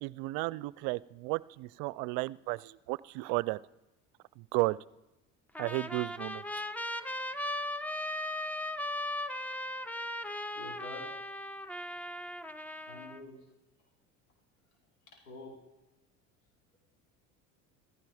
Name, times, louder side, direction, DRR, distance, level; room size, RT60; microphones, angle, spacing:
voice 1, 0.0-3.6 4.4-4.8 5.6-6.4, right 23 dB, 65° right, 22 dB, 0.6 m, -33 dB
Trumpet, 5.5-13.2, left 1 dB, 5° left, 0.7 m, -38 dB
voice 2, 10.5-11.1 12.9-13.4 15.1-15.6, left 1 dB, 90° left, -1 dB, 4.6 m, -47 dB
16.0 x 14.0 x 5.0 m, 0.97 s
hypercardioid pair, 80°, 40 cm